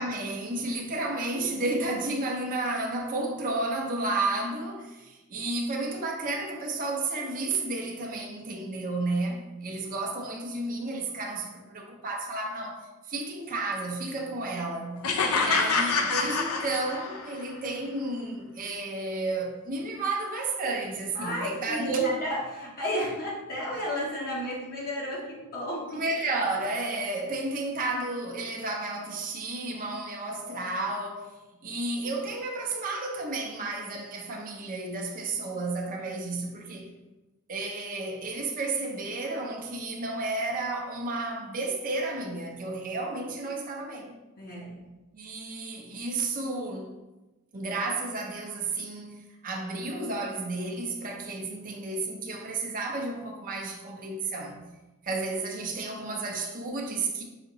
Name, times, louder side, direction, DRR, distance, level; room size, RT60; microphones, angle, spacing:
voice 1, 0.0-15.0 15.4-22.1 25.9-31.3 31.6-36.9 37.5-44.2 45.1-46.9 47.5-49.2 49.4-54.6 55.0-57.2, right 2 dB, 35° right, 0.6 m, -32 dB
sound 1, 15.0-17.4, left 4 dB, 70° left, 0.5 m, -26 dB
voice 2, 21.1-26.0 36.0-36.1 36.7-36.8 44.4-44.8, left 1 dB, 40° left, 0.8 m, -33 dB
5.0 x 2.8 x 3.8 m
head